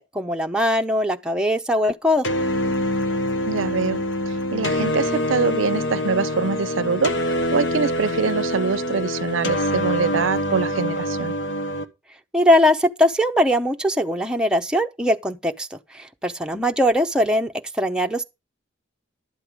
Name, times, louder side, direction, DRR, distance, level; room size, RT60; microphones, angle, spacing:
voice 1, 0.1-2.3 12.3-18.2, equal, 5° right, 0.8 m, -21 dB
sound 1, 2.2-11.8, left 1 dB, 65° left, 1.1 m, -25 dB
voice 2, 3.5-4.0 4.3-11.3, right 5 dB, 85° right, 0.5 m, -24 dB
11.5 x 7.8 x 5.0 m
head